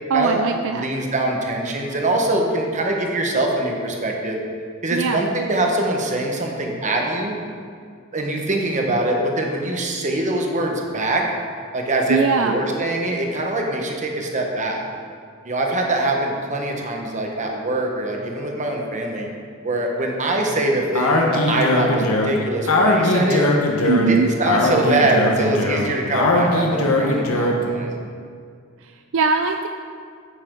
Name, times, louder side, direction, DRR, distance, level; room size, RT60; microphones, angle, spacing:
voice 1, 0.1-0.9 4.9-5.2 12.1-12.6 23.9-24.3 29.1-29.7, right 5 dB, 65° right, 6 dB, 0.4 m, -20 dB
voice 2, 0.7-4.4 4.8-7.4 8.1-11.2 11.7-14.8 15.4-19.3 19.6-23.5 24.1-27.9, right 2 dB, 35° right, 1 dB, 1.2 m, -23 dB
Speech, 20.9-27.7, left 2 dB, 80° left, 1.2 m, -20 dB
9.6 x 8.5 x 3.8 m, 2.2 s
head